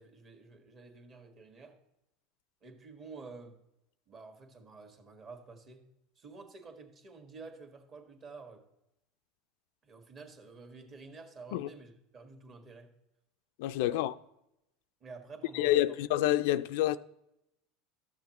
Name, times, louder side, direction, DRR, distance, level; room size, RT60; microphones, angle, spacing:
voice 1, 0.0-1.8 2.6-3.6 4.1-5.9 6.1-8.6 9.8-12.9 13.8-14.0 15.0-16.0, right 4 dB, 35° right, 1.5 m, -50 dB
voice 2, 13.6-14.1 15.5-17.0, left 14 dB, 70° left, 0.3 m, -28 dB
12.5 x 7.1 x 3.0 m
supercardioid pair, 120°, 0 cm